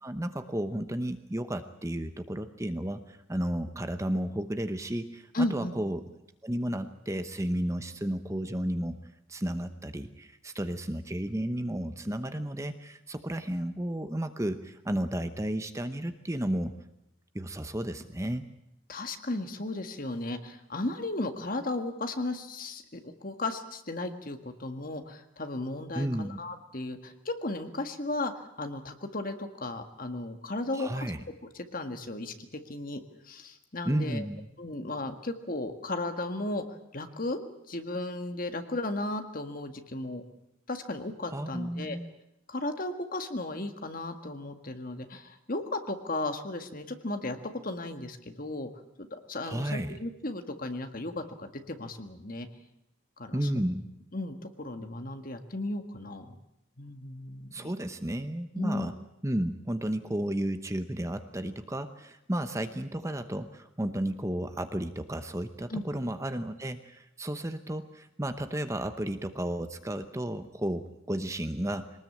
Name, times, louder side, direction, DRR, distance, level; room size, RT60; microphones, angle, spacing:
voice 1, 0.0-6.0 6.4-9.0 9.3-16.7 17.3-18.5 25.9-26.4 30.7-31.2 33.8-34.5 41.3-42.1 49.4-50.0 53.3-53.9 57.5-58.9 59.2-71.9, right 1 dB, 15° right, 9 dB, 0.9 m, -33 dB
voice 2, 5.3-5.7 18.9-30.9 31.7-34.2 34.6-36.6 36.9-37.4 37.7-40.2 40.7-42.0 42.5-48.7 49.0-52.5 53.2-53.4 54.1-56.4 56.8-57.7 58.6-58.9 65.7-65.8, left 2 dB, 45° left, 7 dB, 1.8 m, -35 dB
22.5 x 19.5 x 8.6 m, 0.84 s
head